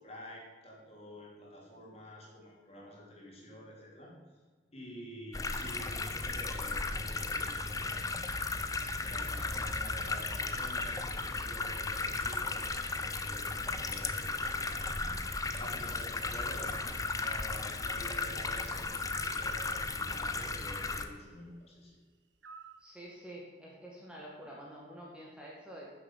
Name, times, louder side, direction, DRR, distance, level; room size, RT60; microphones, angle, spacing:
voice 1, 0.0-4.1 4.7-8.2 9.0-15.1 15.5-18.9 19.2-22.0, equal, 35° left, -3 dB, 3.5 m, -49 dB
sound 1, 5.3-21.0, left 3 dB, 20° left, 0.7 m, -35 dB
sound 2, 9.4-15.7, right 1 dB, 25° right, 0.8 m, -54 dB
sound 3, 19.1-19.5 22.4-22.8, right 5 dB, 80° right, 0.9 m, -49 dB
voice 2, 22.8-25.9, right 1 dB, 5° right, -4 dB, 2.0 m, -48 dB
10.0 x 7.6 x 7.5 m, 1.4 s
head